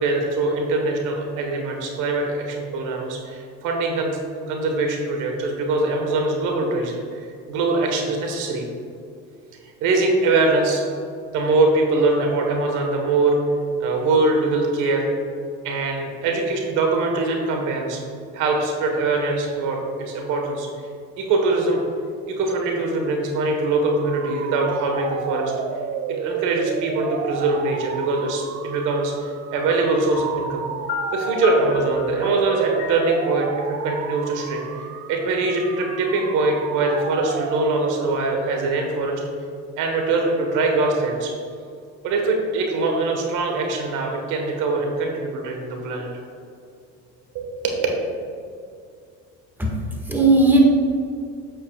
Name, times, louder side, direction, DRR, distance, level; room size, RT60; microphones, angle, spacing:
voice 1, 0.0-4.1 4.5-8.7 9.8-10.8 11.3-13.4 13.8-15.1 15.6-18.0 18.3-20.7 21.2-21.8 22.3-25.5 26.2-30.7 31.1-39.2 39.8-41.3 42.0-46.1 47.3-47.8, right 3 dB, 70° right, 2 dB, 1.5 m, -23 dB
sound 1, 23.7-38.3, right 7 dB, 50° right, 0.6 m, -32 dB
Piano, 30.1-35.0, left 3 dB, 85° left, 1.5 m, -33 dB
voice 2, 49.6-50.6, right 2 dB, 5° right, -1 dB, 1.8 m, -18 dB
8.9 x 7.8 x 2.4 m, 2.3 s
supercardioid pair, 90°, 32 cm